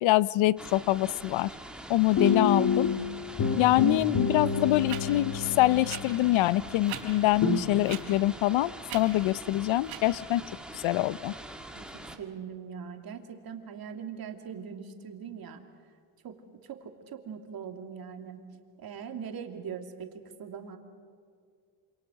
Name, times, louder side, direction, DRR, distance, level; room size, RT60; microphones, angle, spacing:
voice 1, 0.0-1.5 1.9-2.9 3.6-10.4 10.7-11.3, left 16 dB, 70° left, 19 dB, 0.6 m, -25 dB
sound 1, 0.6-12.2, right 1 dB, ahead, 1.9 m, -44 dB
sound 2, 2.2-3.0 3.4-7.0 7.4-7.7, left 5 dB, 40° left, 2.3 m, -28 dB
sound 3, 4.0-4.1 4.9-5.0 5.9-6.0 6.8-7.0 7.9-8.0 8.9-9.0 9.8-10.0, right 15 dB, 80° right, 3.9 m, -38 dB
voice 2, 11.7-15.6 16.2-18.4 18.8-20.8, right 7 dB, 45° right, 4 dB, 2.9 m, -41 dB
27.5 x 27.5 x 6.4 m, 2.3 s
cardioid pair, 140°, 49 cm